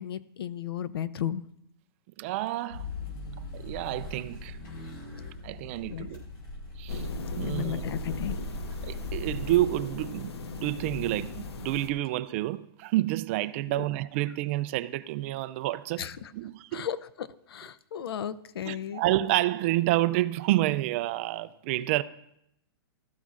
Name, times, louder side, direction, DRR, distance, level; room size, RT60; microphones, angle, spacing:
voice 1, 0.0-1.5 5.8-6.1 7.5-8.4 13.7-13.9 16.0-16.3 16.7-19.0, left 10 dB, 70° left, 0.6 m, -34 dB
voice 2, 2.2-2.9 3.5-4.6 5.4-6.2 6.8-7.1 7.4-7.8 8.8-16.0 16.3-16.9 18.6-22.0, right 16 dB, 30° right, 0.3 m, -29 dB
sound 1, 2.7-9.6, left 2 dB, 55° left, 4.9 m, -40 dB
sound 2, 6.9-11.9, left 3 dB, 90° left, 1.2 m, -37 dB
15.5 x 13.5 x 2.5 m
hypercardioid pair, 155°, 13 cm